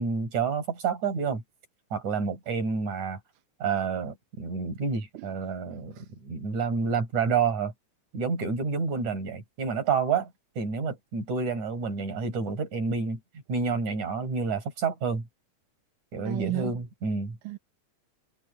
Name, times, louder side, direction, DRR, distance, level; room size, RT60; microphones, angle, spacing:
voice 1, 0.0-1.4 1.9-3.2 3.6-7.7 8.1-13.2 13.5-15.3 16.1-17.4, right 5 dB, 65° right, 6.1 m, -29 dB
voice 2, 5.7-6.0 16.2-16.7 17.4-17.6, right 17 dB, 85° right, 2.7 m, -34 dB
omnidirectional pair, 3.7 m